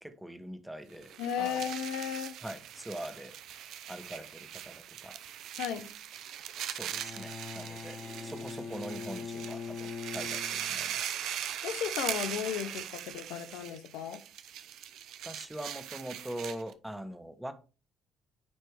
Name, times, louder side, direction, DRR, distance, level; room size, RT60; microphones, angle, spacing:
voice 1, 0.0-1.1 1.4-1.7 2.4-3.4 3.9-5.1 6.7-11.1 15.2-17.5, right 1 dB, 5° right, 1.2 m, -43 dB
sound 1, 0.9-16.7, right 10 dB, 75° right, 0.6 m, -40 dB
voice 2, 1.2-2.4 5.6-5.9 11.6-14.2, left 9 dB, 80° left, 0.6 m, -35 dB
Bowed string instrument, 6.9-11.0, left 5 dB, 45° left, 0.7 m, -42 dB
9.4 x 3.3 x 3.3 m
supercardioid pair, 65°, 0 cm